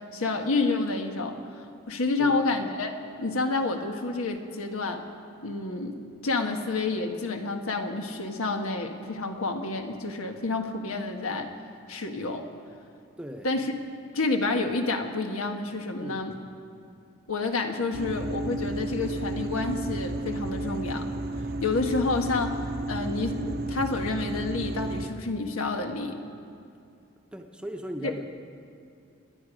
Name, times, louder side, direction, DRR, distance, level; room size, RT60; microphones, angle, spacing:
voice 1, 0.0-2.9 3.2-5.0 5.4-11.5 11.9-12.4 13.4-13.7 14.1-16.3 17.3-21.1 21.6-26.2, left 3 dB, 90° left, 4 dB, 1.4 m, -29 dB
voice 2, 2.2-2.5 13.2-13.6 16.0-16.3 27.3-28.3, equal, 5° right, 3 dB, 0.8 m, -38 dB
sound 1, 17.9-25.1, right 2 dB, 45° right, 0.7 m, -32 dB
27.5 x 10.5 x 5.1 m, 2.6 s
head